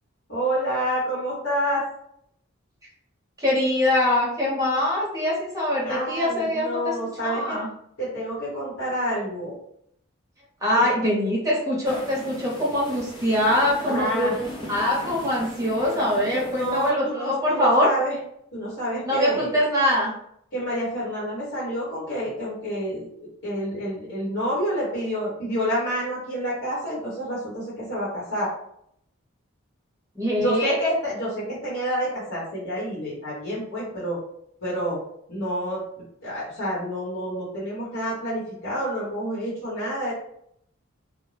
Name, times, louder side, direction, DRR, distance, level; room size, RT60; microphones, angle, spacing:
voice 1, 0.3-1.8 5.8-7.6 8.0-9.5 10.7-10.8 13.9-14.3 16.5-18.1 18.5-19.6 20.5-23.1 23.4-28.5 30.4-34.2 34.6-35.0 35.3-40.1, equal, 60° left, -9 dB, 1.1 m, -28 dB
voice 2, 3.4-6.9 7.2-7.7 10.6-14.3 14.7-17.9 19.0-20.1 30.1-30.8, left 1 dB, 15° right, -5 dB, 0.9 m, -23 dB
sound 1, 11.8-16.9, equal, 20° left, 0.5 m, -38 dB
2.6 x 2.2 x 3.3 m, 0.71 s
head